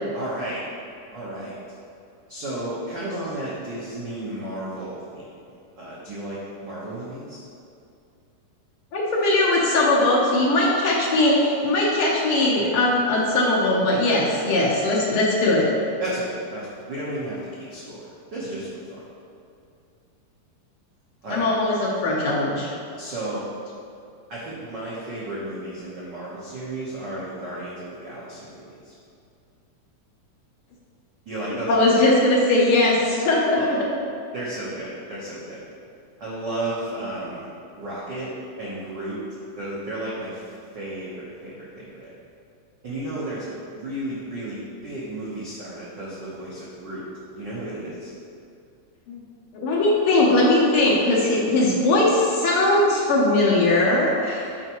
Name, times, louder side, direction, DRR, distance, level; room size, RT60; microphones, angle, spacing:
voice 1, 0.1-0.6 1.1-1.6 2.3-7.4 16.0-17.4 17.7-19.1 21.2-21.4 23.0-23.4 24.3-28.9 31.2-31.8 33.6-33.7 34.3-35.6 36.2-37.5 37.7-38.3 38.6-39.2 39.5-42.1 42.8-47.0 47.3-48.1, right 1 dB, 70° right, -9 dB, 1.0 m, -33 dB
voice 2, 8.9-15.7 21.3-22.7 31.7-33.8 49.1-49.2 49.5-54.6, left 2 dB, 85° left, -4 dB, 1.2 m, -20 dB
9.5 x 4.6 x 3.0 m, 2.5 s
omnidirectional pair, 3.6 m